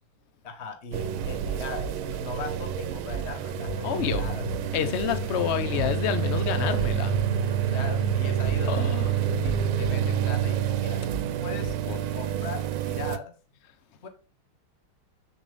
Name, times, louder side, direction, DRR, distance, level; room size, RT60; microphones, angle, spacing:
voice 1, 0.4-4.4 5.2-5.7 7.7-8.8 9.2-11.0 11.4-11.8 12.1-13.3 14.0-14.1, left 5 dB, 40° left, 1.0 m, -39 dB
sound 1, 0.9-13.2, right 10 dB, 75° right, 1.5 m, -28 dB
sound 2, 1.5-1.9 3.1-3.3 3.6-3.7 4.1-4.6 5.8-6.0 6.3-6.4 6.8-7.2 8.5-8.7 9.0-9.1 9.4-9.9 11.1-11.3 11.6-11.7, right 5 dB, 55° right, 1.2 m, -34 dB
sound 3, 3.5-10.9, left 9 dB, 85° left, 1.6 m, -36 dB
voice 2, 3.8-4.2 4.7-7.1 8.7-9.1 11.9-12.0, left 9 dB, 65° left, 0.6 m, -28 dB
7.7 x 7.2 x 3.4 m
omnidirectional pair, 2.4 m